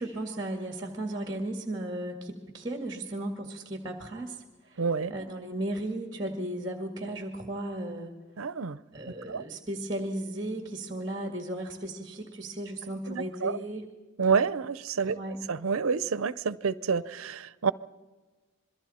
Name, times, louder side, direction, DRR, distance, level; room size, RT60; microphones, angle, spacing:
voice 1, 0.0-4.4 4.6-4.8 5.1-8.1 8.9-13.8 15.1-15.4, right 1 dB, 20° right, 4 dB, 1.9 m, -35 dB
voice 2, 4.8-5.1 8.4-8.8 9.1-9.4 13.1-13.6 14.2-15.2 15.5-17.7, right 5 dB, 80° right, 17 dB, 0.6 m, -28 dB
27.5 x 22.5 x 4.3 m, 1.3 s
head